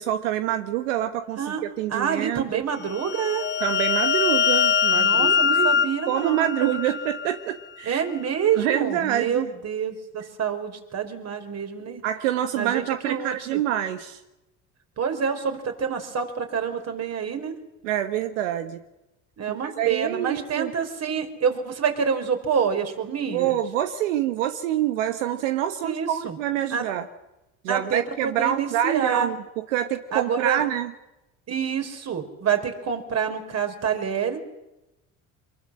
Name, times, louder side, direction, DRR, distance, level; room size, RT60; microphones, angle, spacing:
voice 1, 0.0-2.6 3.6-5.7 6.1-8.0 8.6-9.5 12.0-14.2 17.8-18.8 19.5-20.7 23.3-27.0 27.6-29.4 29.7-30.9, right 11 dB, 90° right, 8 dB, 1.4 m, -26 dB
voice 2, 1.9-3.4 4.9-7.1 7.8-12.0 12.6-13.6 15.0-17.5 19.4-23.6 25.8-26.4 26.7-26.9 27.7-29.3 30.1-30.6 31.5-34.4, right 7 dB, 45° right, 6 dB, 5.0 m, -27 dB
sound 1, 2.9-7.4, left 7 dB, 30° left, 0.9 m, -23 dB
24.5 x 21.5 x 7.7 m, 0.94 s
supercardioid pair, 85°, 37 cm